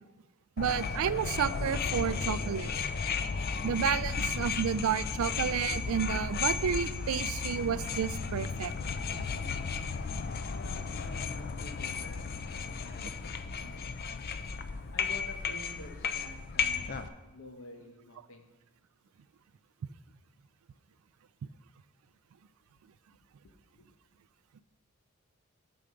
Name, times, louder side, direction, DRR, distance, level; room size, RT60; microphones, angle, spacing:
sound 1, 0.6-17.1, left 5 dB, 45° left, 0.4 m, -34 dB
voice 1, 0.6-2.7 3.6-8.7, right 8 dB, 70° right, 0.3 m, -31 dB
voice 2, 10.5-14.3 14.9-18.5 23.4-23.9, left 2 dB, 65° left, 0.9 m, -50 dB
7.1 x 6.6 x 5.1 m
head